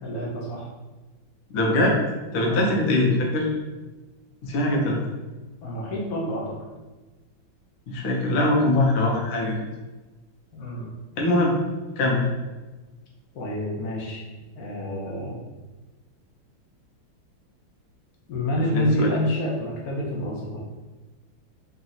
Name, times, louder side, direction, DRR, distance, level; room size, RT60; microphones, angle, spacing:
voice 1, 0.0-0.7 2.5-2.7 5.6-6.5 10.5-10.9 13.3-14.2 14.6-15.4 18.3-20.6, left 1 dB, 55° left, -2 dB, 1.3 m, -28 dB
voice 2, 1.5-2.0 2.3-3.5 4.4-5.0 7.9-9.5 11.2-11.6 12.0-12.2 18.6-19.1, left 1 dB, 90° left, -1 dB, 1.7 m, -22 dB
4.0 x 3.1 x 3.9 m, 1.2 s
omnidirectional pair, 2.2 m